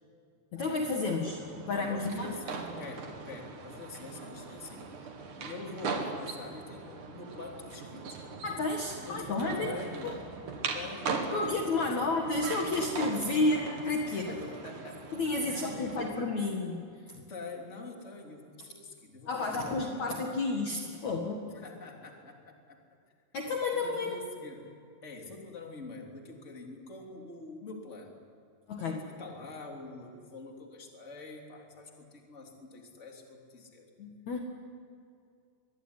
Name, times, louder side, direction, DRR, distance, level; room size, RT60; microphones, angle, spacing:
voice 1, 0.5-2.3 8.4-9.7 10.0-10.1 11.3-14.3 15.1-17.2 19.3-21.5 23.3-24.1 28.7-29.0 34.0-34.4, left 3 dB, 50° left, 1 dB, 2.7 m, -31 dB
sound 1, 1.2-16.1, right 4 dB, 55° right, 3.3 m, -40 dB
voice 2, 1.7-5.1 5.4-8.4 9.0-10.3 10.7-12.1 14.1-15.0 15.4-16.3 17.3-20.2 21.5-22.8 23.7-24.7 25.0-28.2 28.8-33.9, left 3 dB, 20° left, 1 dB, 3.1 m, -45 dB
25.0 x 22.0 x 9.9 m, 2.4 s
omnidirectional pair, 4.7 m